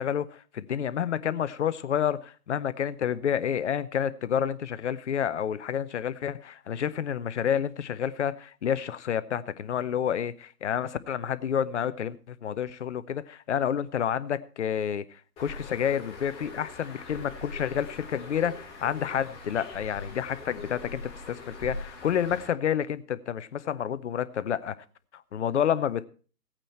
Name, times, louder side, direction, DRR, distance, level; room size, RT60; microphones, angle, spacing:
voice 1, 0.0-24.8 25.1-26.0, left 9 dB, 45° left, 15 dB, 0.6 m, -29 dB
Bird, 15.4-22.5, left 3 dB, 10° left, 1.8 m, -42 dB
16.0 x 9.0 x 4.3 m, 0.39 s
hypercardioid pair, 150°, 48 cm